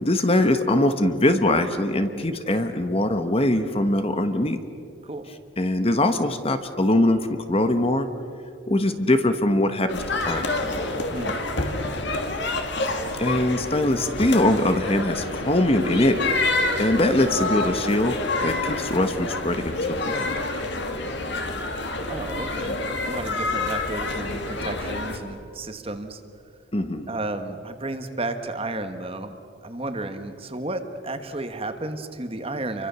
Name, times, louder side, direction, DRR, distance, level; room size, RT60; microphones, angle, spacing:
voice 1, 0.0-4.6 5.6-8.1 8.7-10.5 13.2-16.2 16.8-18.2 18.4-20.3 26.7-27.1, left 1 dB, 30° left, 9 dB, 1.1 m, -22 dB
sound 1, 9.9-25.2, left 2 dB, 55° left, 2.3 m, -28 dB
sound 2, 14.4-21.6, right 2 dB, 60° right, 2.0 m, -39 dB
voice 2, 22.1-26.2 27.1-29.4 29.6-32.9, right 2 dB, 25° right, 8 dB, 1.5 m, -32 dB
29.5 x 24.0 x 6.9 m, 2.5 s
head